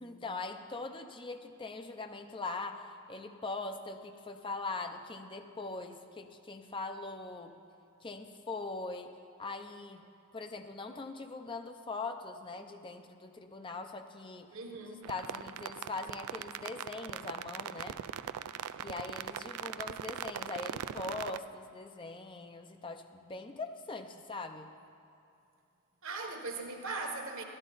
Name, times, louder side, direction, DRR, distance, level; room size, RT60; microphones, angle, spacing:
voice 1, 0.0-7.6 8.0-9.1 9.4-10.0 10.3-14.5 14.8-18.0 18.8-24.7, left 3 dB, 20° left, 6 dB, 0.5 m, -41 dB
voice 2, 14.5-15.1 26.0-27.4, right 3 dB, 60° right, 3 dB, 1.2 m, -39 dB
sound 1, 15.0-21.4, right 9 dB, 80° right, 0.3 m, -41 dB
13.0 x 12.0 x 4.0 m, 2.7 s
head